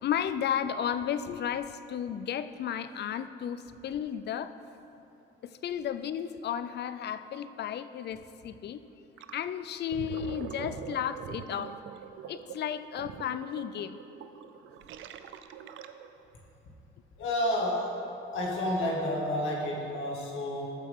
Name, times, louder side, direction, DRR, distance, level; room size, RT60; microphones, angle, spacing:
voice 1, 0.0-4.5 5.4-8.8 9.3-11.8 12.3-14.0, left 9 dB, 60° left, 13 dB, 0.5 m, -33 dB
Gurgling, 9.2-9.4 9.8-16.2, right 8 dB, 80° right, 0.5 m, -43 dB
voice 2, 17.2-17.9 18.3-20.7, left 1 dB, 80° left, -3 dB, 2.1 m, -30 dB
13.5 x 7.2 x 3.7 m, 2.8 s
cardioid pair, 90°, 20 cm